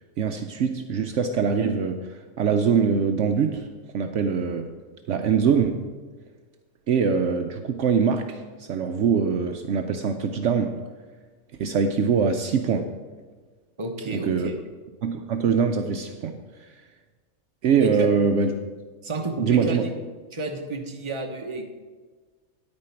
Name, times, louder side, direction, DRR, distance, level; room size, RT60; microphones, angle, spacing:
voice 1, 0.2-3.7 3.9-4.7 5.1-5.8 6.9-10.8 11.6-12.9 14.1-14.5 15.0-16.4 17.6-18.5 19.4-19.9, right 6 dB, 65° right, 6 dB, 0.9 m, -23 dB
voice 2, 13.8-14.5 17.8-18.1 19.0-19.9 20.3-21.7, right 3 dB, 25° right, 3 dB, 0.9 m, -31 dB
9.8 x 8.8 x 4.5 m, 1.4 s
omnidirectional pair, 1.4 m